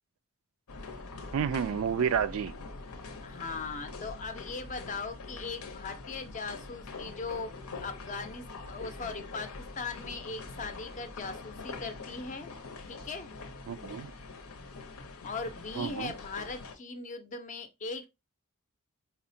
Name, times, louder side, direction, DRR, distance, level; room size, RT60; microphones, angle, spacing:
sound 1, 0.7-16.8, left 3 dB, 80° left, 0.7 m, -44 dB
voice 1, 1.3-2.6 13.7-14.1 15.8-16.1, right 7 dB, 65° right, 0.3 m, -30 dB
voice 2, 3.2-7.5 7.8-12.5 12.9-13.3 15.2-18.1, left 4 dB, 35° left, 0.5 m, -39 dB
4.4 x 2.1 x 2.6 m
head